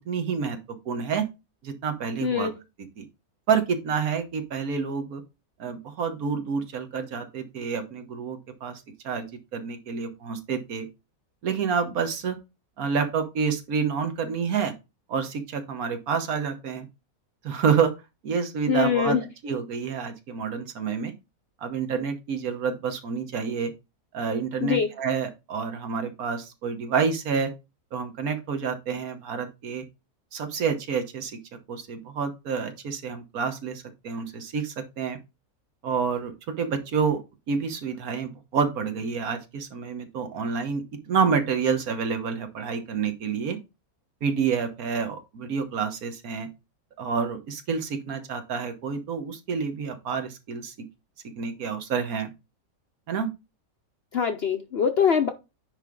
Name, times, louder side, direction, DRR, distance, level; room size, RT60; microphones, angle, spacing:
voice 1, 0.1-0.6 0.8-1.2 1.6-2.5 3.0-3.1 3.5-5.2 5.6-9.3 9.5-10.9 11.4-12.4 12.8-14.7 15.1-16.9 17.4-17.9 18.2-21.1 21.6-23.7 24.1-27.5 27.9-29.8 30.3-31.4 31.7-35.2 35.8-37.2 37.5-43.6 44.2-46.5 47.0-50.7 51.4-52.3 53.1-53.3, right 6 dB, 70° right, 1.5 m, -28 dB
voice 2, 2.2-2.5 18.7-19.2 24.6-24.9 54.1-55.3, left 7 dB, 55° left, 0.7 m, -23 dB
9.7 x 3.4 x 3.8 m
omnidirectional pair, 1.6 m